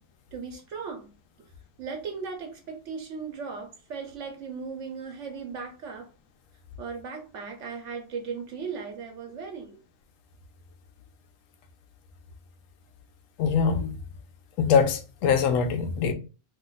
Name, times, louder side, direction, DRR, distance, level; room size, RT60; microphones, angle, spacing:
voice 1, 0.3-1.1 1.8-6.1 6.8-9.8, right 5 dB, 70° right, 1.1 m, -37 dB
voice 2, 13.4-13.9 14.6-16.1, left 6 dB, 90° left, 1.0 m, -23 dB
2.8 x 2.4 x 3.9 m
omnidirectional pair, 1.3 m